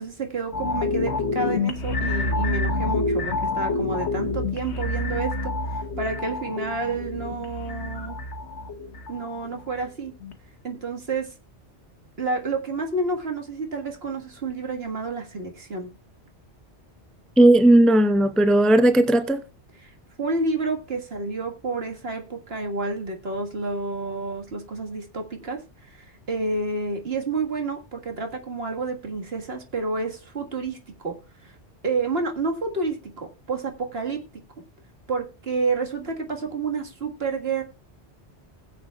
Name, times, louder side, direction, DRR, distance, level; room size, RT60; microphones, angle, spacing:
voice 1, 0.0-8.2 9.1-10.1 10.6-11.3 12.2-15.9 19.8-30.8 31.0-31.1 31.4-31.5 31.8-34.4 35.1-37.6, right 3 dB, 65° right, 1.9 m, -29 dB
sound 1, 0.5-9.8 10.2-10.3, left 3 dB, 80° left, 1.4 m, -28 dB
voice 2, 17.4-19.4, right 1 dB, ahead, 0.6 m, -16 dB
20.5 x 7.6 x 2.3 m
omnidirectional pair, 1.1 m